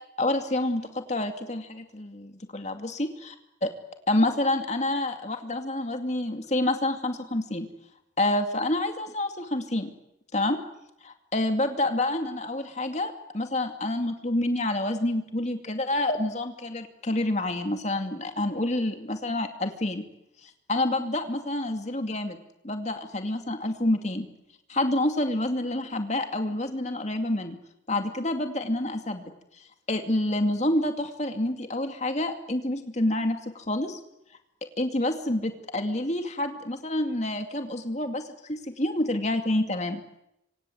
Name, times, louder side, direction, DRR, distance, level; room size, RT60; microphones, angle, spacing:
voice 1, 0.2-3.3 3.6-3.7 4.1-7.7 8.2-9.9 10.3-10.6 11.0-20.1 20.7-22.4 22.6-24.3 24.7-27.6 27.9-29.2 29.9-34.0 34.8-40.0, left 1 dB, 35° left, 6 dB, 2.5 m, -28 dB
27.0 x 25.0 x 8.0 m, 0.85 s
head